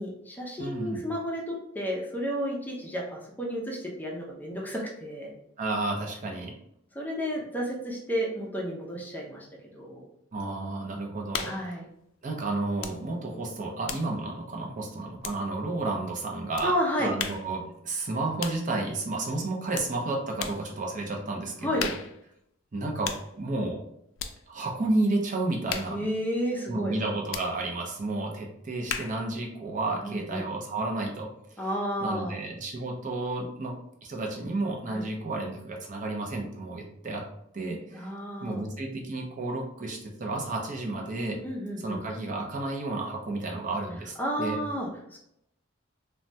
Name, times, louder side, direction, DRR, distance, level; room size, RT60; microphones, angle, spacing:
voice 1, 0.0-5.3 6.9-9.5 9.7-10.1 11.4-11.9 16.6-17.1 21.6-21.8 25.9-26.9 30.0-30.5 31.6-32.3 34.9-35.0 37.9-38.6 41.4-42.0 44.2-45.2, equal, 10° left, -2 dB, 0.5 m, -32 dB
voice 2, 0.6-1.0 5.6-6.5 10.3-11.8 12.2-21.9 22.7-23.8 24.5-26.0 26.7-31.3 32.0-33.7 34.0-37.2 37.5-38.1 38.4-41.4 41.8-44.6, right 2 dB, 40° right, 0 dB, 0.5 m, -31 dB
sound 1, 11.3-11.7 12.8-13.0 13.3-15.7 16.6-16.7 17.2-17.5 18.4-18.7 19.7-20.0 20.4-20.7 21.8-22.2 23.0-23.3 24.2-24.4 25.7-26.0 27.3-27.5 28.9-29.3, left 7 dB, 80° left, 0.3 m, -36 dB
3.2 x 2.2 x 2.6 m, 0.76 s
head